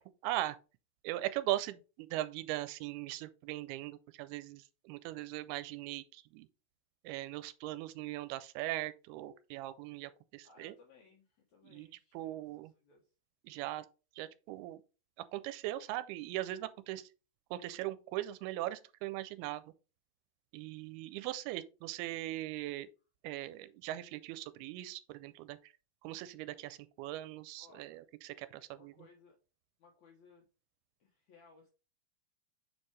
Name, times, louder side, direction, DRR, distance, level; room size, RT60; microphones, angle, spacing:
voice 1, 0.2-0.6 1.0-6.5 7.0-10.7 11.6-11.9 12.1-12.7 13.4-13.9 14.2-14.8 15.2-17.1 17.5-19.6 20.5-22.9 23.2-25.7 26.0-28.9, right 15 dB, 85° right, 2.4 m, -40 dB
voice 2, 10.4-12.4 12.8-13.1 27.6-28.0 28.8-29.4 29.8-30.5 31.0-31.7, left 4 dB, 75° left, 1.7 m, -62 dB
7.1 x 4.5 x 3.2 m
omnidirectional pair, 4.6 m